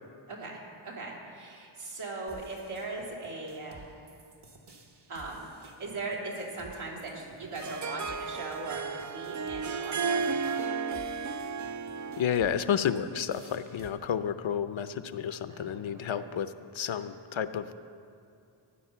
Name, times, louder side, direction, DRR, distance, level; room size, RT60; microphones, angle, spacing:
voice 1, 0.3-3.8 5.1-10.7 15.5-16.2 16.9-17.0, right 2 dB, 80° right, -3 dB, 3.3 m, -39 dB
sound 1, 2.3-13.9, right 3 dB, 55° right, 1.5 m, -54 dB
Harp, 7.2-12.5, right 5 dB, 40° right, 0.4 m, -33 dB
voice 2, 12.2-17.8, left 8 dB, 70° left, 11 dB, 0.7 m, -31 dB
16.0 x 10.0 x 6.8 m, 2.5 s
wide cardioid pair, 140°, 50 cm